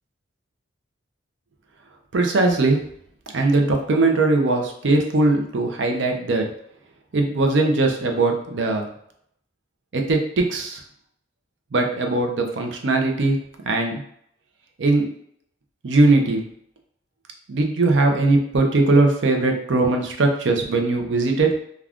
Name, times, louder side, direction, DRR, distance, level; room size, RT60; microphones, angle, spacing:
voice 1, 2.1-2.8 3.3-6.5 7.1-8.9 9.9-10.8 11.7-13.4 13.7-14.0 14.8-15.1 15.8-16.4 17.5-21.5, right 2 dB, 70° right, 3 dB, 0.5 m, -20 dB
2.4 x 2.3 x 3.4 m, 0.69 s
head